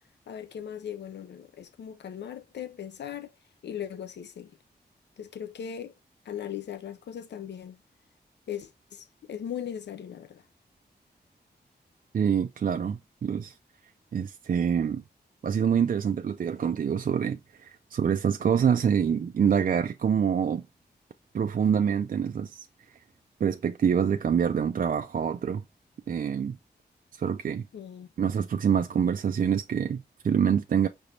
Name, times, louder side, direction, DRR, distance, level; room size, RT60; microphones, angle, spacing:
voice 1, 0.3-3.3 3.6-4.5 5.2-5.9 6.2-7.8 8.5-10.4 27.7-28.1, left 9 dB, 85° left, 0.5 m, -38 dB
voice 2, 12.1-13.5 14.1-15.0 15.4-20.6 21.3-22.7 23.4-25.6 26.1-26.6 27.2-27.6 28.2-30.9, right 7 dB, 55° right, 0.4 m, -26 dB
5.9 x 3.4 x 2.6 m
wide cardioid pair, 125°, 17 cm